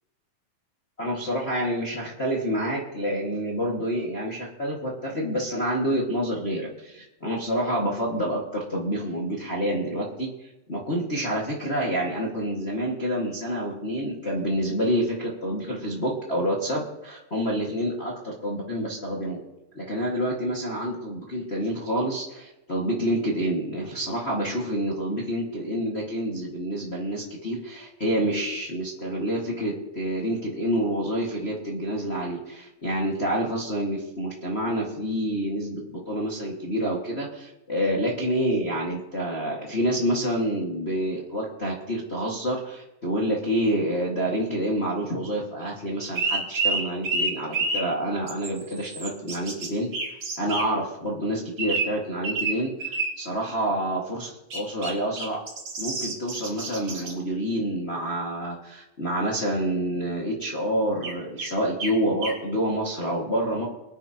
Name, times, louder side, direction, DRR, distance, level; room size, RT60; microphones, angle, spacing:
voice 1, 1.0-19.4 19.7-49.9 50.4-55.4 55.8-63.7, right 1 dB, 35° left, -3 dB, 1.1 m, -28 dB
sound 1, 46.0-47.8 48.3-49.7 49.9-50.6 51.6-51.9 52.2-52.5 52.8-53.1 54.5-54.9 55.2-57.1 61.0-61.1 61.4-61.5 61.8-61.9 62.2-62.3, right 3 dB, 45° right, 3.4 m, -28 dB
23.5 x 9.6 x 2.9 m, 0.94 s
omnidirectional pair, 4.0 m